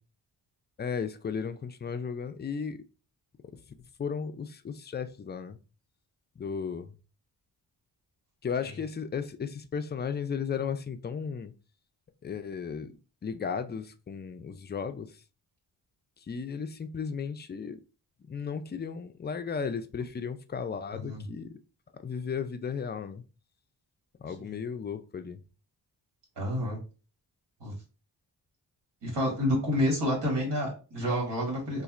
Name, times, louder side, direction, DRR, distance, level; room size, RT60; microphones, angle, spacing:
voice 1, 0.8-2.8 4.0-5.6 6.4-6.9 8.4-11.5 12.2-12.9 13.2-15.2 16.3-17.8 18.3-21.6 22.0-23.2 24.2-25.4, left 6 dB, 25° left, 0.4 m, -35 dB
voice 2, 20.9-21.2 26.4-26.8 27.6-27.7 29.0-31.8, equal, 75° right, 1.9 m, -29 dB
4.1 x 2.5 x 2.4 m
cardioid pair, 70°, 42 cm